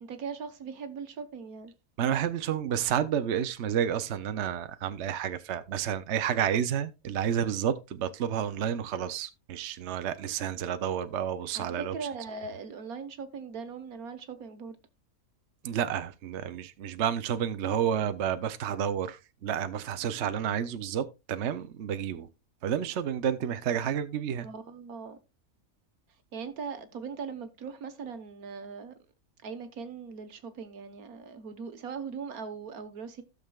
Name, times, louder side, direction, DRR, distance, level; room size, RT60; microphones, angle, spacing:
voice 1, 0.0-1.7 11.5-14.8 24.4-25.2 26.3-29.0 29.4-33.2, right 5 dB, 75° right, 1.6 m, -40 dB
voice 2, 2.0-11.9 15.6-22.3 22.6-24.5, right 9 dB, 60° right, 0.9 m, -30 dB
16.0 x 6.6 x 2.3 m
omnidirectional pair, 1.6 m